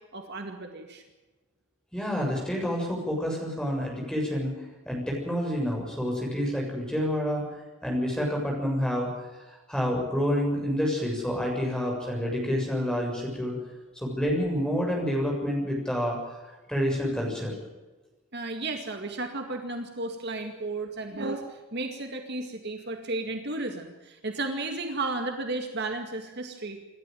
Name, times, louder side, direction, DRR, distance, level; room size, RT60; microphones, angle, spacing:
voice 1, 0.1-1.0 18.3-26.8, right 2 dB, 50° right, 4 dB, 2.1 m, -33 dB
voice 2, 1.9-4.5 4.9-7.4 7.8-9.1 9.7-13.6 14.0-16.4 16.7-17.5, equal, 5° left, -1 dB, 7.0 m, -28 dB
27.5 x 12.5 x 9.2 m, 1.2 s
head